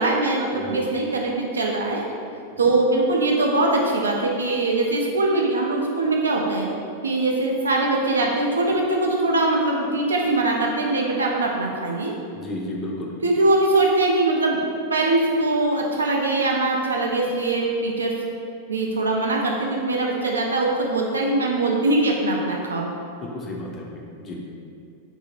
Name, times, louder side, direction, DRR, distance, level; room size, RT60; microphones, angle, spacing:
voice 1, 0.0-2.0 2.6-6.7 7.0-12.1 13.2-14.6 14.9-18.1 18.7-22.9, right 2 dB, 75° right, -1 dB, 0.3 m, -22 dB
voice 2, 12.3-13.2 23.2-24.4, left 1 dB, 25° left, -2 dB, 0.4 m, -33 dB
2.6 x 2.0 x 3.1 m, 2.4 s
figure-of-eight pair, 90°, 0 cm